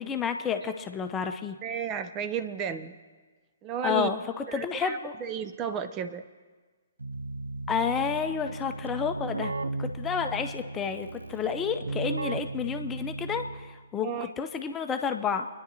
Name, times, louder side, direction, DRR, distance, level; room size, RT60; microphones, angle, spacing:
voice 1, 0.0-1.6 3.8-5.1 7.7-9.5 9.8-15.5, left 7 dB, 15° left, 6 dB, 0.7 m, -30 dB
voice 2, 1.6-3.0 3.6-4.1 4.5-6.2 14.0-14.3, right 7 dB, 25° right, 9 dB, 0.6 m, -33 dB
Keyboard (musical), 7.0-13.9, right 2 dB, 80° right, 0.5 m, -36 dB
29.5 x 10.5 x 2.8 m, 1.4 s
figure-of-eight pair, 125°, 0 cm